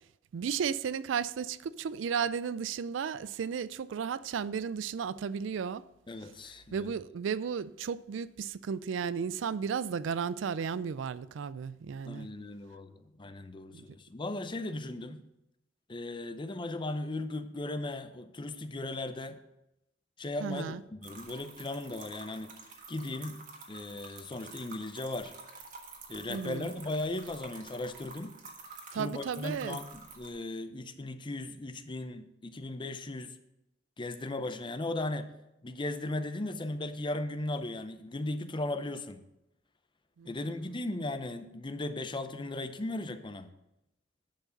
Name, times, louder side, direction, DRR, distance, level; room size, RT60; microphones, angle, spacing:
voice 1, 0.3-5.8 6.7-12.3 13.7-13.8 20.4-20.8 26.3-26.7 28.9-29.8 40.2-40.4, right 6 dB, 85° right, 0.4 m, -34 dB
voice 2, 6.1-6.9 12.1-15.2 15.9-19.4 20.2-22.5 22.9-25.3 26.1-28.4 28.9-33.4 34.0-35.3 35.6-39.2 40.2-43.5, left 2 dB, 25° left, 0.6 m, -37 dB
sound 1, 21.0-30.3, right 4 dB, 45° right, 1.5 m, -49 dB
10.5 x 5.0 x 6.5 m
head